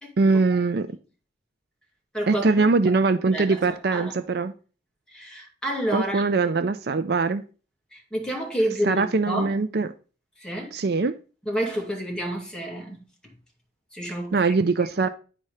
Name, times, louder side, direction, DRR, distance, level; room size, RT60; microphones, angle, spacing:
voice 1, 0.2-0.9 2.3-4.5 5.9-7.4 8.8-9.9 10.7-11.1 14.3-15.1, right 4 dB, 55° right, 0.5 m, -22 dB
voice 2, 2.1-2.9 3.2-3.6 3.9-4.1 5.1-6.2 7.9-9.5 10.4-10.7 11.5-13.0 13.9-14.4, equal, 5° left, 2.3 m, -29 dB
10.0 x 4.3 x 4.9 m
head